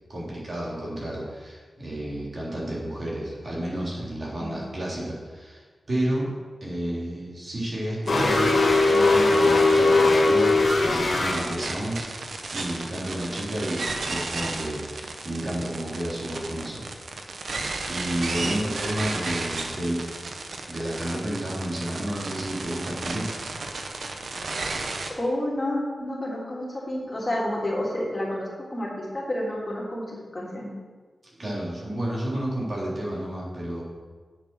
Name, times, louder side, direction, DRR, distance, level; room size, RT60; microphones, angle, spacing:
voice 1, 0.1-5.6 5.9-6.3 6.6-8.5 8.8-16.9 17.4-20.0 20.7-23.3 31.4-33.8, right 1 dB, 50° right, -5 dB, 3.5 m, -31 dB
sound 1, 8.1-11.3, left 2 dB, 65° left, 2.4 m, -19 dB
sound 2, 8.1-25.1, right 3 dB, 75° right, 1.0 m, -34 dB
voice 2, 25.2-30.7, left 1 dB, 25° left, -4 dB, 3.0 m, -30 dB
8.3 x 7.2 x 6.2 m, 1.5 s
wide cardioid pair, 85°, 0 cm